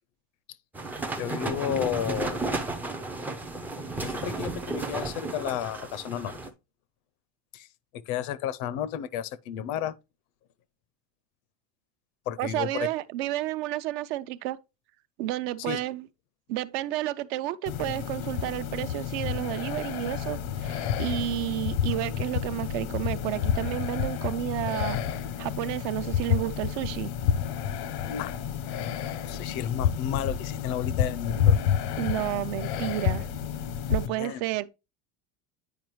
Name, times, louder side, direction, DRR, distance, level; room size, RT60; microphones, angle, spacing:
sound 1, 0.7-6.5, right 2 dB, 5° right, 0.3 m, -33 dB
voice 1, 1.2-2.4 4.0-6.5 7.5-7.7 8.1-9.9 12.3-12.9 15.6-15.8 28.1-28.3 29.3-31.6 34.2-34.4, left 10 dB, 55° left, 0.5 m, -32 dB
voice 2, 12.4-14.6 15.2-16.1 16.5-25.0 25.4-27.1 32.0-33.3 33.9-34.7, right 15 dB, 70° right, 0.6 m, -31 dB
sound 2, 17.7-34.1, left 8 dB, 80° left, 0.8 m, -29 dB
9.1 x 4.9 x 3.0 m
cardioid pair, 175°, 33 cm